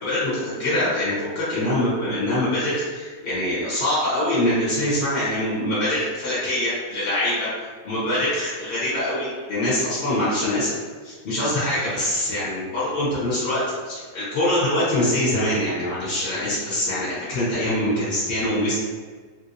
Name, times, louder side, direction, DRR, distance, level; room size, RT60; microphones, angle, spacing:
voice 1, 0.0-7.5 7.8-10.7 11.0-18.7, left 1 dB, 40° left, -10 dB, 1.3 m, -24 dB
3.2 x 2.7 x 2.6 m, 1.5 s
omnidirectional pair, 1.7 m